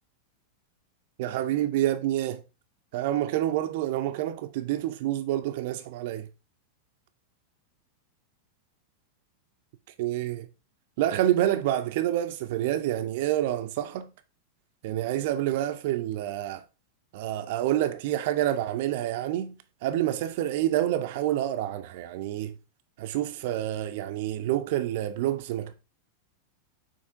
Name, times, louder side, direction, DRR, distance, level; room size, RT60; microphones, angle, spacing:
voice 1, 1.2-2.4 2.9-6.3 10.0-10.5 11.0-14.1 14.8-16.6 17.1-19.5 19.8-22.5 23.0-25.7, right 13 dB, 50° right, 0.3 m, -28 dB
6.4 x 2.9 x 2.5 m
figure-of-eight pair, 90°, 0 cm